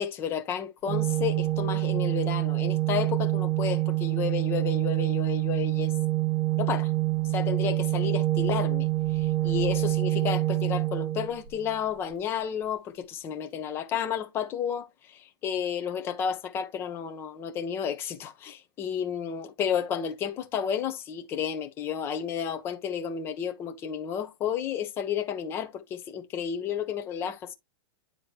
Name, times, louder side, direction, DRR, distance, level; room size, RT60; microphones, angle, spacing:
voice 1, 0.0-5.9 6.6-6.9 7.3-8.9 9.1-27.5, left 8 dB, 20° left, 1.0 m, -32 dB
Organ, 0.9-11.8, right 18 dB, 20° right, 0.9 m, -26 dB
9.8 x 3.8 x 3.4 m
supercardioid pair, 165°, 12 cm